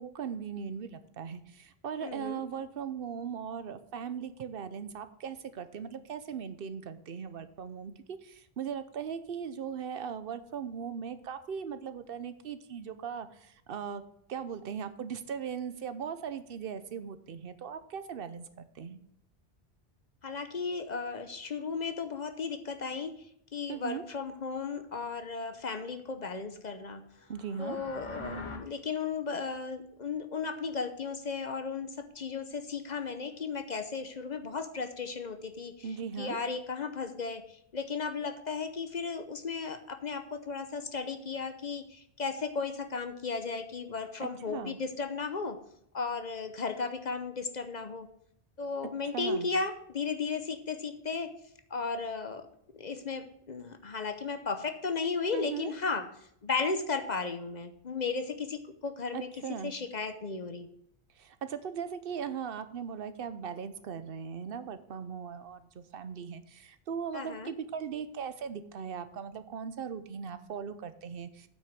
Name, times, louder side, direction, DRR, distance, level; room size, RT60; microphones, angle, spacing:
voice 1, 0.0-14.0 14.3-18.4 18.7-19.0 23.7-24.0 27.3-27.8 35.8-36.4 44.5-44.8 49.1-49.5 55.3-55.7 59.1-59.7 61.2-71.5, right 7 dB, 65° right, 11 dB, 0.9 m, -39 dB
voice 2, 2.0-2.4 20.2-23.3 23.5-27.0 27.6-35.7 36.2-45.6 45.9-48.1 48.6-51.3 51.7-52.5 52.7-56.1 56.4-59.3 59.6-60.7 67.1-67.5, left 4 dB, 45° left, 9 dB, 0.8 m, -35 dB
sound 1, 27.2-28.6, left 2 dB, 30° left, 1.2 m, -42 dB
8.6 x 6.1 x 6.1 m, 0.70 s
omnidirectional pair, 1.1 m